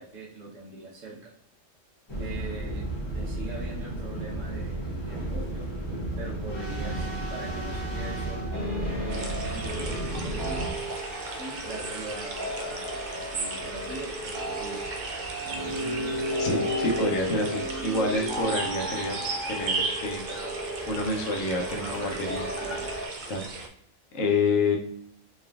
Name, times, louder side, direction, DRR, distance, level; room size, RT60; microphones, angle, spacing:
voice 1, 0.0-1.3 2.2-2.8 3.1-5.7 6.2-8.5 9.0-10.8 11.4-14.9 15.4-15.7 21.7-23.0, right 3 dB, 80° right, -4 dB, 1.5 m, -41 dB
sound 1, 2.1-10.7, right 1 dB, 25° left, 0.8 m, -33 dB
sound 2, 8.5-23.1, equal, 15° right, 1.5 m, -34 dB
sound 3, 9.1-23.7, right 3 dB, 55° right, 0.5 m, -37 dB
voice 2, 16.4-19.2 19.5-20.2 20.9-22.4 23.3-23.5 24.1-24.8, left 2 dB, 90° left, 1 dB, 1.2 m, -27 dB
4.2 x 3.3 x 2.4 m, 0.69 s
omnidirectional pair, 1.3 m